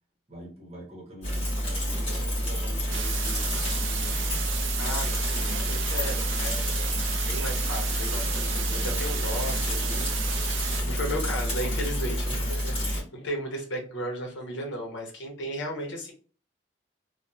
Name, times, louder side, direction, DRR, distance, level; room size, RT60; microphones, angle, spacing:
voice 1, 0.3-4.3 8.7-9.7 10.8-11.0 12.8-13.1, right 1 dB, 35° right, -3 dB, 0.9 m, -46 dB
Bicycle / Mechanisms, 1.2-13.0, equal, 30° left, 1.2 m, -29 dB
sound 1, 2.9-10.8, right 8 dB, 85° right, 0.4 m, -33 dB
voice 2, 4.8-6.7 7.3-10.4 10.8-16.1, equal, 75° left, 1 dB, 0.8 m, -35 dB
2.9 x 2.2 x 2.3 m, 0.39 s
head